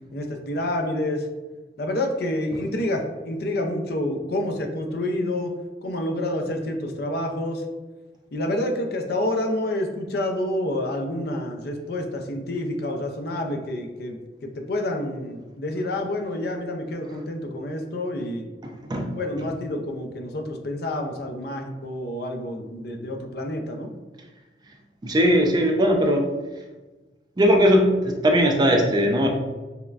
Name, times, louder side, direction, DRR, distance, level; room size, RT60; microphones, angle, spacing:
voice 1, 0.1-1.3 1.8-5.5 5.8-7.6 8.3-18.4 19.2-23.9, left 1 dB, 60° left, 4 dB, 0.4 m, -28 dB
voice 2, 18.6-19.1 25.0-26.3 27.4-29.3, equal, 25° right, 3 dB, 0.3 m, -19 dB
5.6 x 2.1 x 2.3 m, 1.2 s
head